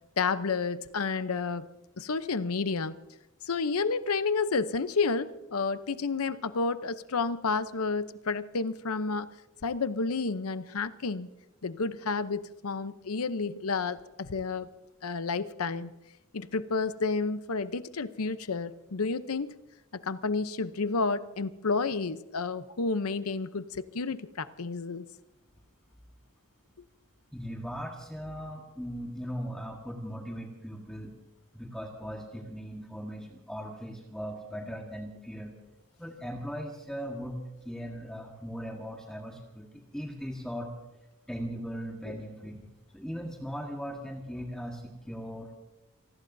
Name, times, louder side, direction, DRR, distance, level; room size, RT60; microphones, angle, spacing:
voice 1, 0.2-1.7 2.0-3.0 3.5-9.3 9.6-11.3 11.6-14.7 15.0-15.9 16.3-19.5 19.9-25.1 42.0-42.2, left 4 dB, 80° left, 12 dB, 0.8 m, -30 dB
voice 2, 27.3-31.1 31.5-35.5 36.0-40.7 41.3-42.7 42.9-45.6, equal, 5° left, 0 dB, 1.5 m, -39 dB
27.5 x 19.5 x 2.7 m, 0.95 s
head